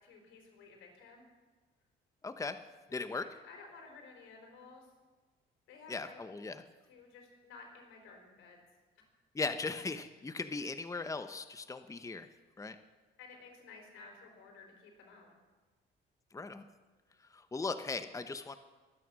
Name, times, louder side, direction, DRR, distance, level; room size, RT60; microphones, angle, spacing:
voice 1, 0.0-1.2 3.2-4.9 5.7-6.2 6.8-8.6 13.2-15.3, left 4 dB, 90° left, 2 dB, 4.2 m, -54 dB
voice 2, 2.2-2.6 2.9-3.3 5.9-6.6 9.3-12.3 12.6-12.8 16.3-16.6 17.3-18.6, left 3 dB, 15° left, 10 dB, 0.8 m, -38 dB
23.5 x 9.4 x 6.2 m, 1.3 s
cardioid pair, 90°, 20 cm